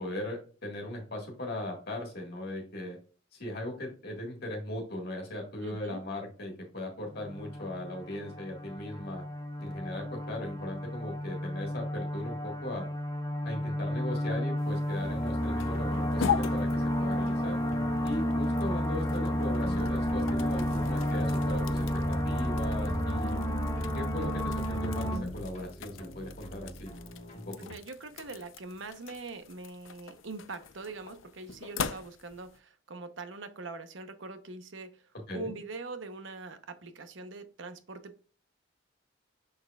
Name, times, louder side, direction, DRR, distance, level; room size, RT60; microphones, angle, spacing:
voice 1, 0.0-3.0 3.3-9.2 9.6-12.8 13.4-17.6 18.0-23.4 23.9-26.9 27.3-27.5 35.3-35.5, left 1 dB, 55° left, 0 dB, 1.6 m, -38 dB
voice 2, 5.6-6.0 27.6-35.0 35.3-38.2, right 3 dB, 70° right, 9 dB, 0.8 m, -42 dB
sound 1, 7.1-25.2, equal, 15° left, 1.0 m, -31 dB
sound 2, 14.6-32.6, left 7 dB, 80° left, 0.5 m, -41 dB
sound 3, 15.7-27.6, equal, 30° left, 1.5 m, -42 dB
6.5 x 6.5 x 2.3 m, 0.38 s
head